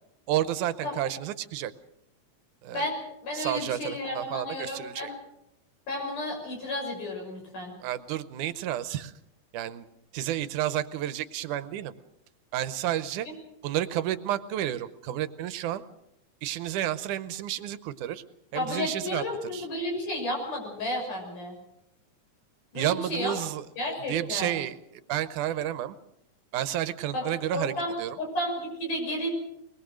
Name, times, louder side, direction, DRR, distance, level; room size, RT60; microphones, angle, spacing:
voice 1, 0.3-1.7 2.6-2.9 3.3-5.1 7.8-9.1 9.5-9.9 10.1-11.9 12.5-13.3 13.6-15.8 16.4-18.2 18.5-19.2 19.5-19.7 22.8-23.6 24.1-26.0 26.5-27.7 28.0-28.2, right 12 dB, 80° right, 13 dB, 2.4 m, -31 dB
voice 2, 2.7-5.1 5.9-7.7 13.2-13.4 18.5-21.6 22.7-23.3 23.8-24.5 27.1-29.3, left 1 dB, 85° left, 1 dB, 8.0 m, -32 dB
22.5 x 21.0 x 6.3 m, 0.81 s
omnidirectional pair, 3.5 m